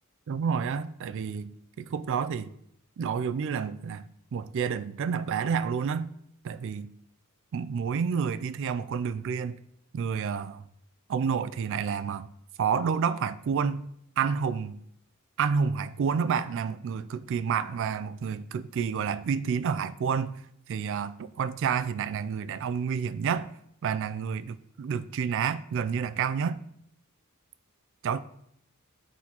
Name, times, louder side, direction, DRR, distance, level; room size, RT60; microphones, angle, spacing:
voice 1, 0.3-2.5 3.0-4.1 4.3-6.1 6.4-6.9 7.5-9.6 9.9-10.6 11.1-12.3 12.6-13.9 14.2-14.8 15.4-20.4 20.7-23.5 23.8-26.6 28.0-28.2, right 6 dB, 60° right, 0.3 m, -29 dB
9.4 x 4.0 x 2.9 m
head